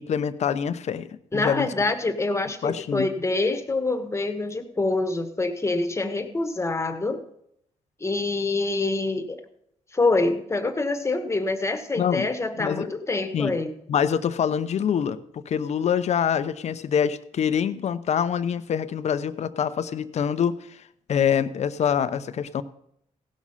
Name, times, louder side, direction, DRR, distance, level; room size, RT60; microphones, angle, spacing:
voice 1, 0.0-1.7 2.6-3.1 12.0-12.3 12.6-12.9 13.3-13.6 13.9-20.8 21.1-22.6, left 8 dB, 65° left, 12 dB, 0.7 m, -25 dB
voice 2, 1.3-7.2 8.0-9.4 9.9-13.7, left 3 dB, 20° left, 8 dB, 1.4 m, -26 dB
16.0 x 6.2 x 5.7 m, 0.72 s
cardioid pair, 75°, 13 cm